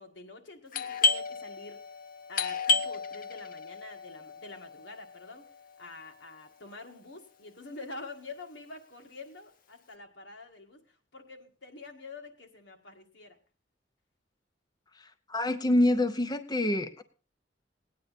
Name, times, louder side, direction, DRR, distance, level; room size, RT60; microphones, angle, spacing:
voice 1, 0.0-1.8 2.3-5.4 5.8-13.4, left 3 dB, 85° left, 4 dB, 1.8 m, -47 dB
Doorbell, 0.7-6.2, left 4 dB, 50° left, 0.8 m, -32 dB
voice 2, 15.3-17.0, left 1 dB, 25° left, 8 dB, 0.6 m, -26 dB
17.5 x 9.5 x 4.1 m, 0.38 s
head